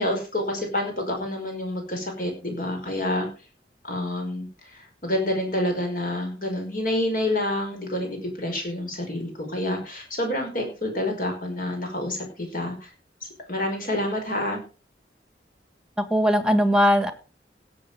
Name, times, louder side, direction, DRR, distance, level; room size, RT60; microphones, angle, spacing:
voice 1, 0.0-3.3 3.8-12.9 13.5-14.6, left 1 dB, 50° left, 3 dB, 5.3 m, -28 dB
voice 2, 16.0-17.1, equal, 5° right, 10 dB, 1.5 m, -20 dB
17.0 x 7.6 x 5.0 m, 0.35 s
head